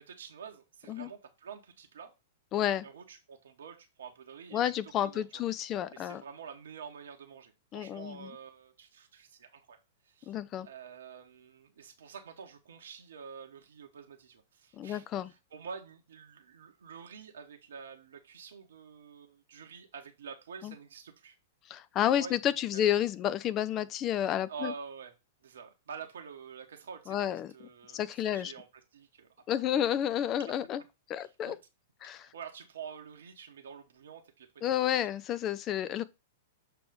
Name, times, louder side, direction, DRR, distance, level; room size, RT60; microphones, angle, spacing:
voice 1, 0.0-2.1 2.8-5.4 5.9-9.8 10.0-10.3 10.6-21.4 22.1-22.4 22.7-22.8 24.5-25.1 25.4-29.8 30.4-30.5 31.2-31.6 32.0-35.1, right 6 dB, 60° right, 0.9 m, -48 dB
voice 2, 2.5-2.9 4.5-6.2 7.7-8.3 10.3-10.7 14.7-15.3 20.6-20.7 21.7-24.7 27.1-27.5 27.9-28.5 29.5-30.8 31.1-31.6 32.0-32.3 34.6-36.0, left 11 dB, 30° left, 0.4 m, -30 dB
6.9 x 2.9 x 5.0 m
figure-of-eight pair, 100°, 0 cm